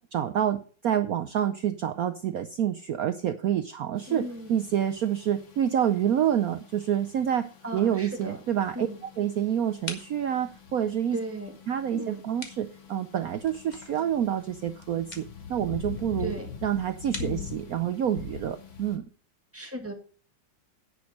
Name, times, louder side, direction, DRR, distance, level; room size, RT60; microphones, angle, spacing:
voice 1, 0.1-4.2 4.5-8.9 9.2-11.2 11.7-16.3 16.6-19.1, right 10 dB, 75° right, 9 dB, 0.8 m, -28 dB
sound 1, 4.0-19.0, left 7 dB, 70° left, 2.5 m, -44 dB
voice 2, 4.1-4.6 7.6-8.4 8.7-9.0 11.1-11.5 11.9-12.2 16.2-16.5 17.2-17.4 19.5-19.9, right 1 dB, 5° right, 2 dB, 2.0 m, -36 dB
sound 2, 8.1-17.9, left 2 dB, 20° left, 1.6 m, -47 dB
10.5 x 6.5 x 6.3 m, 0.41 s
omnidirectional pair, 2.3 m